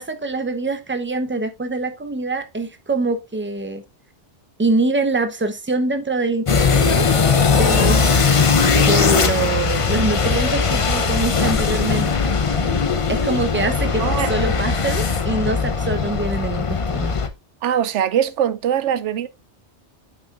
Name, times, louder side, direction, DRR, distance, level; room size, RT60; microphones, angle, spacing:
voice 1, 0.0-3.8 4.6-7.1 7.5-8.1 8.6-12.3 13.1-17.1, right 2 dB, 15° right, 0.6 m, -24 dB
sound 1, 6.5-17.3, left 5 dB, 35° left, 0.6 m, -19 dB
voice 2, 14.0-14.3 17.6-19.3, right 9 dB, 90° right, 0.9 m, -21 dB
8.4 x 5.9 x 2.4 m
omnidirectional pair, 1.2 m